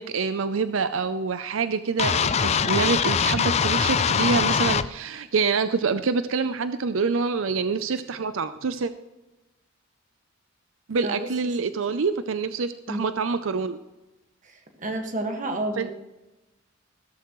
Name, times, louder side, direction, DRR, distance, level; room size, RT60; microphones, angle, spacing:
voice 1, 0.0-8.9 10.9-13.8 15.8-15.9, right 5 dB, 85° right, 12 dB, 0.5 m, -26 dB
sound 1, 2.0-4.9, left 6 dB, 35° left, 0.4 m, -22 dB
voice 2, 11.0-12.0 12.9-13.1 14.4-15.9, right 2 dB, 40° right, 4 dB, 1.7 m, -32 dB
15.0 x 13.5 x 3.1 m, 1.0 s
head